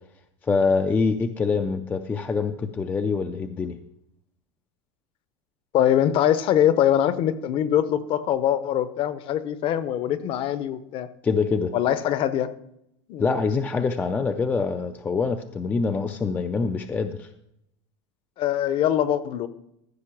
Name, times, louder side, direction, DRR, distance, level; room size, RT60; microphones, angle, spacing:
voice 1, 0.4-3.8 11.2-11.7 13.2-17.3, left 4 dB, 10° left, 8 dB, 0.4 m, -25 dB
voice 2, 5.7-11.1 11.7-12.5 13.1-13.3 18.4-19.5, left 10 dB, 35° left, 14 dB, 0.7 m, -23 dB
14.5 x 5.8 x 5.9 m, 0.79 s
supercardioid pair, 160°, 16 cm